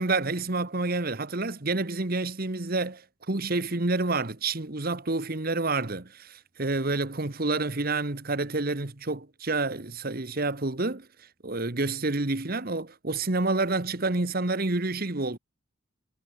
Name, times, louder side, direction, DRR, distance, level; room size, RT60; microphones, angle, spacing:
voice 1, 0.0-3.0 3.3-11.1 11.4-15.4, right 3 dB, 45° right, 1.4 m, -28 dB
head